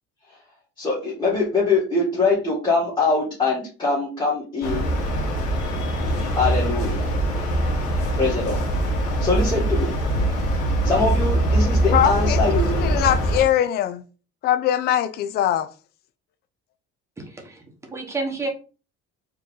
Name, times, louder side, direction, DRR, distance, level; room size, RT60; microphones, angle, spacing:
voice 1, 0.8-4.9 6.3-7.1 8.1-8.6 9.2-10.0 10.8-13.0, left 3 dB, 15° left, 1.7 m, -23 dB
Stadt - Berlin Märkisches Ufer Herbsttag Sirenen, 4.6-13.4, right 1 dB, 55° left, 2.0 m, -22 dB
voice 2, 11.9-12.4 12.8-14.0 14.4-15.7, left 11 dB, 35° left, 0.4 m, -21 dB
voice 3, 17.2-18.5, right 3 dB, 10° right, 0.9 m, -30 dB
4.5 x 3.1 x 3.7 m
cardioid pair, 175°, 29 cm